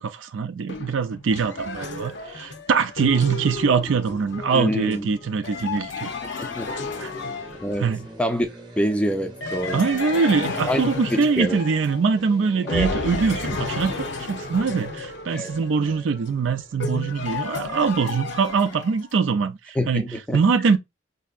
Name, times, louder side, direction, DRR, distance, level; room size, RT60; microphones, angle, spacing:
voice 1, 0.0-6.1 7.0-7.1 7.8-8.1 9.7-20.8, right 5 dB, 80° right, 0.4 m, -23 dB
sound 1, 0.7-8.1 9.4-12.3 12.7-19.1, left 3 dB, 65° left, 0.7 m, -32 dB
sound 2, 4.2-18.1, right 1 dB, 25° right, 0.8 m, -46 dB
voice 2, 4.5-5.2 6.5-6.8 7.6-7.9 8.2-8.5 8.8-9.8 10.7-10.8 11.1-11.6 12.6-12.9 15.3-15.5 19.7-20.4, equal, 5° left, 0.5 m, -26 dB
4.3 x 2.7 x 2.4 m
head